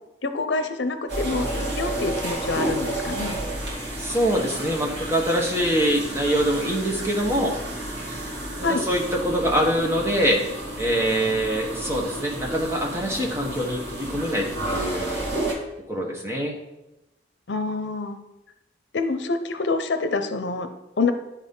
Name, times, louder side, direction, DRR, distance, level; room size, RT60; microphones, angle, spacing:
voice 1, 0.2-3.4 8.6-8.9 17.5-18.2 18.9-20.7 21.0-21.1, left 3 dB, 80° left, 8 dB, 0.7 m, -26 dB
sound 1, 1.1-15.5, right 1 dB, 75° right, 2.3 m, -31 dB
voice 2, 4.0-7.6 8.6-10.4 10.8-15.2 15.9-16.6, equal, 15° right, 0 dB, 1.3 m, -24 dB
10.0 x 4.2 x 5.4 m, 0.96 s
head